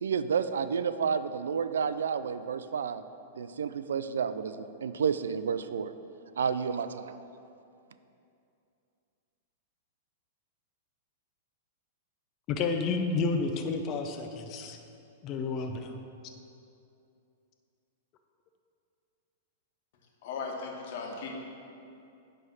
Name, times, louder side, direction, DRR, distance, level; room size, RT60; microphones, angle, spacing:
voice 1, 0.0-3.0 3.4-5.9 6.4-7.2, right 6 dB, 85° right, 12 dB, 0.3 m, -30 dB
voice 2, 12.5-14.8 15.2-16.0, left 4 dB, 40° left, 5 dB, 0.6 m, -30 dB
voice 3, 20.2-21.3, left 4 dB, 60° left, 0 dB, 1.4 m, -37 dB
9.4 x 3.3 x 6.2 m, 2.7 s
hypercardioid pair, 125°, 0 cm